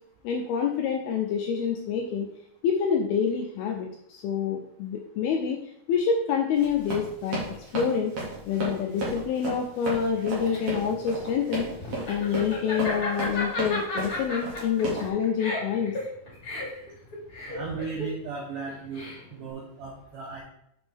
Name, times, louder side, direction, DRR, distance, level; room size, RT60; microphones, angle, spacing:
voice 1, 0.2-2.3 2.6-5.6 5.9-7.4 7.7-8.1 8.5-11.7 12.1-15.9, left 7 dB, 80° left, 2 dB, 2.2 m, -27 dB
Run, 6.5-15.1, right 2 dB, 45° right, 2.7 m, -33 dB
Laughter, 10.2-19.5, left 2 dB, 25° left, 2.3 m, -34 dB
voice 2, 17.5-20.4, right 5 dB, 80° right, -1 dB, 1.9 m, -36 dB
7.5 x 6.1 x 3.5 m, 0.74 s
omnidirectional pair, 5.2 m